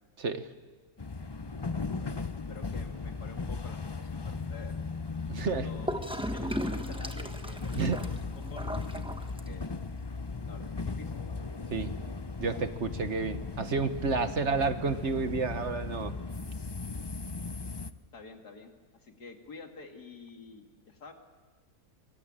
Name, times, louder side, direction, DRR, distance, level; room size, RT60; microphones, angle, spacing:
sound 1, 1.0-17.9, left 4 dB, 30° left, 0.4 m, -37 dB
voice 1, 1.9-4.8 5.4-6.1 6.3-9.7 10.5-11.2 14.2-14.3 17.6-17.7 18.1-21.1, left 4 dB, 90° left, 3 dB, 3.0 m, -49 dB
voice 2, 5.3-5.7 7.8-8.0 11.7-11.9 12.4-16.1, right 4 dB, 50° right, 10 dB, 1.4 m, -30 dB
Gurgling / Toilet flush, 5.9-9.8, equal, 5° right, 1.1 m, -37 dB
24.5 x 22.5 x 8.9 m, 1.3 s
omnidirectional pair, 1.6 m